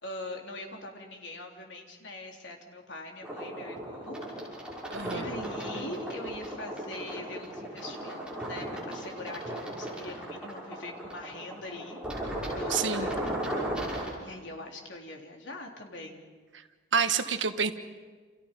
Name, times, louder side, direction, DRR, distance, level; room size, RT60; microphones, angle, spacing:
voice 1, 0.0-4.2 5.0-12.0 12.6-13.1 14.2-16.3, left 2 dB, 80° left, 2 dB, 3.5 m, -42 dB
sound 1, 3.2-14.1, right 1 dB, 5° right, 6.2 m, -36 dB
voice 2, 4.9-5.3 12.7-13.1 16.9-17.7, right 6 dB, 90° right, 9 dB, 1.4 m, -28 dB
29.0 x 28.5 x 5.4 m, 1.5 s
head